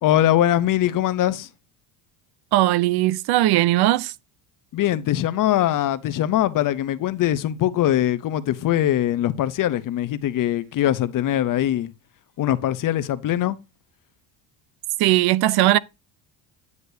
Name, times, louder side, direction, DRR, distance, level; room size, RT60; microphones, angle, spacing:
voice 1, 0.0-1.5 4.7-11.9 12.4-13.6, left 12 dB, 45° left, 0.7 m, -22 dB
voice 2, 2.5-4.1 15.0-15.8, right 16 dB, 55° right, 0.5 m, -18 dB
9.6 x 6.5 x 2.7 m
cardioid pair, 135°, 47 cm